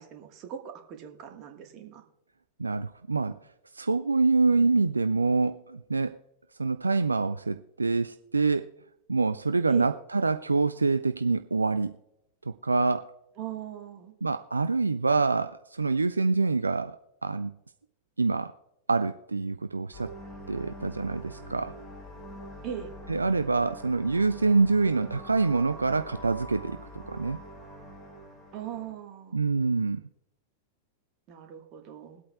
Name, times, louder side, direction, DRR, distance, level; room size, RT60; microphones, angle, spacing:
voice 1, 0.0-2.0 9.7-9.9 13.4-14.1 22.6-22.9 28.5-29.5 31.3-32.2, right 9 dB, 40° right, 4 dB, 1.5 m, -40 dB
voice 2, 2.6-3.3 3.7-6.2 6.6-8.6 9.1-11.9 12.5-13.1 14.2-17.5 18.2-18.5 18.9-20.1 20.5-21.8 23.1-27.4 29.3-30.0, right 3 dB, 80° right, 11 dB, 0.3 m, -26 dB
sound 1, 19.9-28.9, right 1 dB, 10° left, 4.9 m, -44 dB
22.0 x 8.5 x 2.3 m, 0.83 s
figure-of-eight pair, 90°, 0 cm